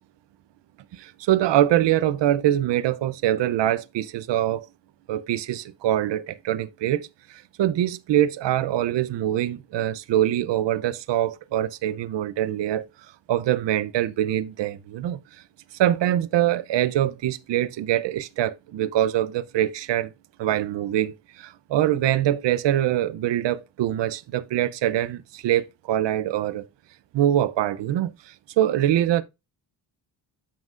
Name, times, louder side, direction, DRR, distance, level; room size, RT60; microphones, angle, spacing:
voice 1, 0.9-4.7 5.1-12.8 13.3-15.4 15.7-20.1 20.4-26.6 27.1-29.2, right 12 dB, 65° right, 0.6 m, -24 dB
7.2 x 5.9 x 2.4 m
cardioid pair, 90°, 46 cm